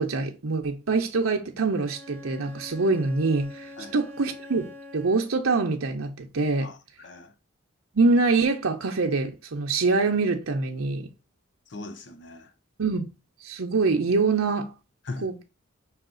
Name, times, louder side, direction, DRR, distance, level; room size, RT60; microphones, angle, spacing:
voice 1, 0.0-4.6 4.9-6.7 7.9-11.1 12.8-13.0 13.4-14.7 15.2-15.4, right 3 dB, 85° right, 0.7 m, -24 dB
Bowed string instrument, 1.7-5.5, left 1 dB, 5° left, 1.0 m, -45 dB
voice 2, 6.6-7.3 11.7-12.5 15.0-15.3, left 2 dB, 55° left, 0.6 m, -39 dB
5.8 x 2.4 x 3.8 m
head